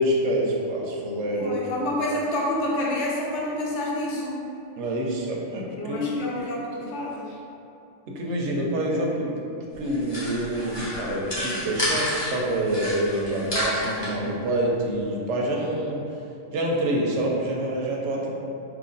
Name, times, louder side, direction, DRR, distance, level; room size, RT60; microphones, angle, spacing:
voice 1, 0.0-1.8 4.8-6.0 6.3-6.4 8.1-9.4 9.8-16.2 16.5-18.3, right 1 dB, 70° right, -2 dB, 0.8 m, -26 dB
voice 2, 1.3-4.4 5.8-7.4, left 1 dB, 65° left, -4 dB, 1.0 m, -28 dB
sound 1, 9.7-12.3 12.7-14.1, left 1 dB, 25° left, 0.6 m, -30 dB
3.1 x 2.5 x 3.8 m, 2.7 s
omnidirectional pair, 1.3 m